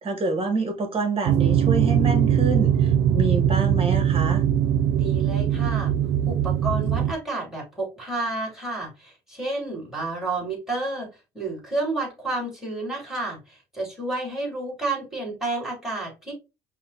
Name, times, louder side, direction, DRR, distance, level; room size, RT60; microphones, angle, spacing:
voice 1, 0.0-4.4, right 3 dB, 35° right, 1.3 m, -27 dB
sound 1, 1.3-7.1, right 9 dB, 80° right, 0.5 m, -21 dB
voice 2, 4.9-5.9 6.2-11.1 11.3-16.3, right 2 dB, ahead, 2.7 m, -30 dB
5.5 x 2.3 x 3.2 m
cardioid pair, 110°, 17 cm